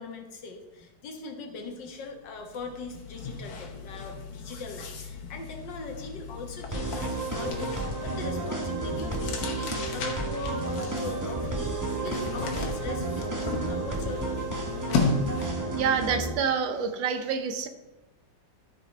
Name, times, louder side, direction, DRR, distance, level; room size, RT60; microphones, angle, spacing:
voice 1, 0.0-14.4, left 3 dB, 70° left, 3 dB, 1.9 m, -40 dB
sound 1, 1.8-2.0 2.3-15.7, left 4 dB, 85° left, 1.9 m, -35 dB
sound 2, 6.7-16.3, right 3 dB, 15° right, 0.6 m, -32 dB
voice 2, 15.7-17.7, right 6 dB, 80° right, 8 dB, 1.5 m, -27 dB
12.5 x 5.4 x 4.2 m, 1.0 s
omnidirectional pair, 2.1 m